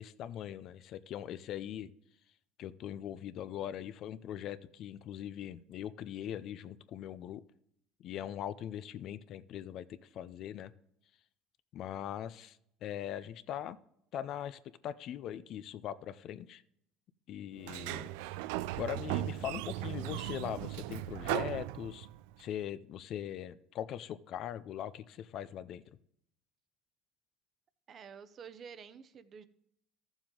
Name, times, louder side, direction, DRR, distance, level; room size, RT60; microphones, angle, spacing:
voice 1, 0.0-1.9 2.6-7.4 8.0-10.7 11.7-13.8 14.1-16.6 17.3-18.1 18.7-22.1 22.4-25.8, left 10 dB, 55° left, 15 dB, 0.5 m, -41 dB
Sliding door, 17.6-22.3, right 15 dB, 85° right, 0.3 m, -37 dB
voice 2, 27.9-29.4, right 7 dB, 40° right, 13 dB, 0.7 m, -50 dB
13.0 x 7.2 x 3.8 m, 0.73 s
supercardioid pair, 110°, 0 cm